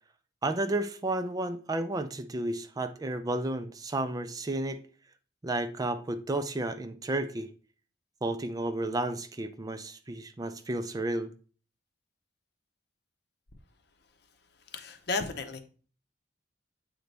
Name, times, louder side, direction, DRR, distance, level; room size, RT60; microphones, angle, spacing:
voice 1, 0.4-4.8 5.4-7.5 8.2-11.3, right 2 dB, 20° right, 0.4 m, -32 dB
voice 2, 14.7-15.6, left 3 dB, 65° left, 0.8 m, -33 dB
7.9 x 3.9 x 3.3 m
head